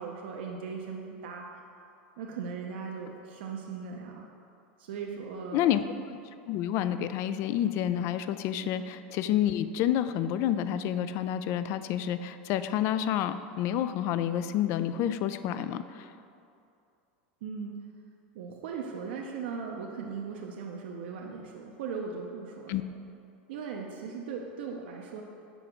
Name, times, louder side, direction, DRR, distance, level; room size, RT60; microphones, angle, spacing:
voice 1, 0.0-1.4 2.2-4.3 4.8-5.7 8.6-8.7 17.4-17.7 18.3-22.8 23.5-25.2, right 5 dB, 75° right, 0 dB, 0.6 m, -38 dB
voice 2, 5.5-5.8 6.5-16.1 22.7-22.8, left 10 dB, 50° left, 12 dB, 0.3 m, -29 dB
6.1 x 4.4 x 5.1 m, 2.6 s
hypercardioid pair, 105°, 6 cm